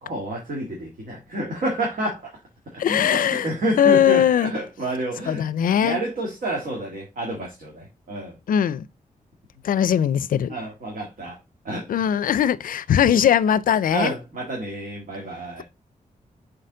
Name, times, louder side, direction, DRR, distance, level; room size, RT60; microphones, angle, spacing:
voice 1, 0.0-2.3 2.7-5.5 5.8-8.4 10.5-11.4 11.6-11.9 13.9-15.6, right 1 dB, 75° right, 1.9 m, -29 dB
voice 2, 2.8-3.5 3.8-4.5 5.3-6.0 8.5-8.9 9.6-10.5 11.9-14.1, left 9 dB, 80° left, 0.4 m, -20 dB
6.7 x 3.9 x 3.7 m
wide cardioid pair, 90°, 14 cm